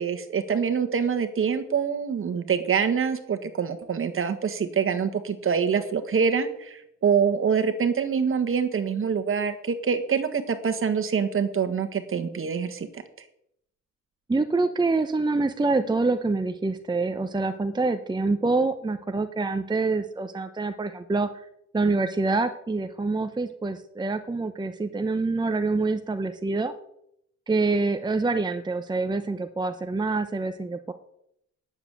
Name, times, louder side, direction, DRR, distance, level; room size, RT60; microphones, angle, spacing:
voice 1, 0.0-13.0, right 6 dB, 45° right, 9 dB, 1.6 m, -25 dB
voice 2, 14.3-21.4 21.7-26.7 27.5-30.9, right 3 dB, 15° right, 8 dB, 0.8 m, -26 dB
9.7 x 7.2 x 8.0 m, 0.75 s
cardioid pair, 90°, 30 cm